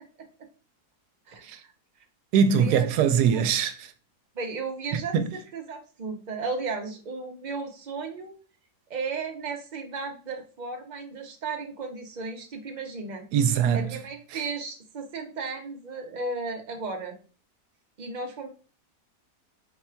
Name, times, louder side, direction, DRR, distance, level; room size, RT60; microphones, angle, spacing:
voice 1, 1.3-1.7 2.6-2.9 3.3-3.4 4.4-8.3 8.9-13.3 13.7-17.2 18.0-18.5, right 4 dB, 65° right, 0.4 m, -35 dB
voice 2, 2.3-3.9 4.9-5.3 13.3-14.0 14.3-14.4, right 7 dB, 85° right, 1.1 m, -23 dB
4.1 x 2.3 x 4.3 m
omnidirectional pair, 1.7 m